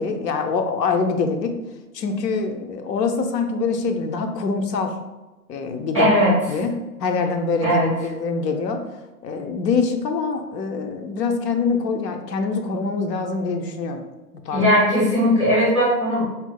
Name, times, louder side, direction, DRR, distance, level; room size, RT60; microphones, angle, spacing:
voice 1, 0.0-1.5 1.9-5.0 5.5-6.1 6.5-6.7 7.0-8.8 9.2-14.0 14.5-14.7, left 4 dB, 80° left, 5 dB, 0.6 m, -24 dB
voice 2, 5.9-6.3 7.6-7.9 14.5-16.2, equal, 20° right, -10 dB, 0.5 m, -18 dB
4.0 x 2.0 x 2.2 m, 1.1 s
hypercardioid pair, 165°, 49 cm